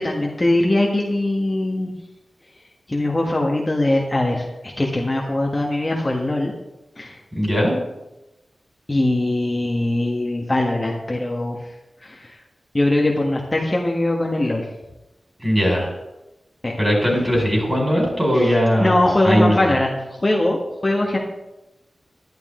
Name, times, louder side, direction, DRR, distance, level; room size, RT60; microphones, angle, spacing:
voice 1, 0.0-1.9 2.9-6.5 7.0-7.2 8.9-11.6 12.0-12.3 12.7-14.7 16.6-16.8 18.3-19.9 20.2-21.2, left 1 dB, 25° left, -2 dB, 1.6 m, -21 dB
voice 2, 7.4-7.8 15.4-15.9 16.8-18.9 19.2-19.7, equal, 20° right, -1 dB, 5.2 m, -19 dB
11.5 x 11.5 x 3.8 m, 0.96 s
wide cardioid pair, 75°, 0 cm